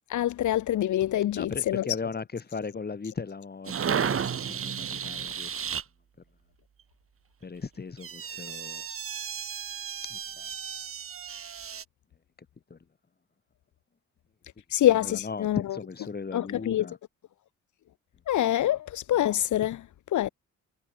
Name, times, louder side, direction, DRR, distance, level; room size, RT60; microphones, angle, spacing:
voice 1, 0.1-1.9 14.7-15.6 16.3-16.9 18.3-19.9 20.1-20.3, left 12 dB, 75° left, 2.5 m, -25 dB
voice 2, 1.3-5.5 7.4-8.9 10.1-10.5 12.7-12.8 14.9-17.0, left 4 dB, 30° left, 7.9 m, -37 dB
sound 1, 3.7-5.8 8.0-11.8, right 7 dB, 45° right, 2.4 m, -33 dB
cardioid pair, 90°, 30 cm